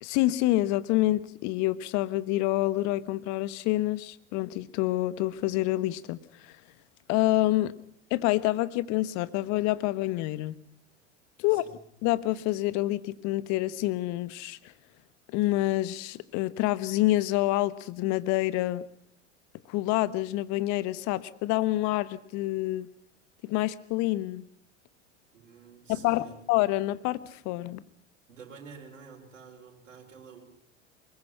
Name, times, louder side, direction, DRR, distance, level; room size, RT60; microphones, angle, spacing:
voice 1, 0.0-6.5 7.1-7.7 8.1-10.6 11.4-11.6 12.0-14.7 15.3-18.8 19.7-22.9 23.4-24.4 25.9-27.8, left 17 dB, 50° left, 16 dB, 1.3 m, -27 dB
voice 2, 11.4-11.8 25.3-26.4 28.3-30.4, right 5 dB, 80° right, 1 dB, 4.4 m, -49 dB
24.0 x 21.5 x 5.7 m, 0.70 s
hypercardioid pair, 85°, 37 cm